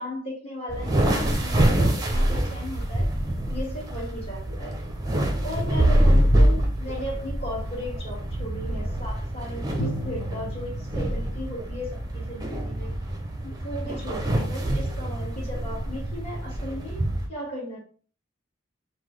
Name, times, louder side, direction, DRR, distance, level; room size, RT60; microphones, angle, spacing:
voice 1, 0.0-3.1 3.5-4.7 5.4-12.9 13.4-17.8, left 1 dB, 30° left, -4 dB, 1.7 m, -36 dB
sound 1, 0.7-17.2, right 1 dB, 20° right, 0.6 m, -25 dB
Bowed string instrument, 9.8-12.6, equal, 65° left, 0.7 m, -37 dB
5.7 x 2.3 x 3.2 m, 0.41 s
head